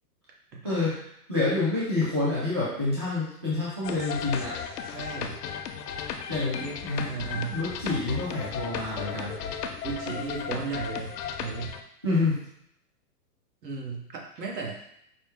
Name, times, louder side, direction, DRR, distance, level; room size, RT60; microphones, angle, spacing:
voice 1, 0.5-1.0 4.8-5.4 6.3-6.8 7.1-7.6 9.8-11.1 11.4-11.7 13.6-14.8, right 5 dB, 85° right, -1 dB, 1.4 m, -35 dB
voice 2, 1.3-4.5 6.3-7.0 7.3-9.3 12.0-12.4, left 2 dB, 20° right, -8 dB, 0.3 m, -28 dB
sound 1, 3.8-11.8, left 7 dB, 65° left, 0.6 m, -35 dB
5.1 x 2.1 x 3.6 m, 0.75 s
hypercardioid pair, 150°, 49 cm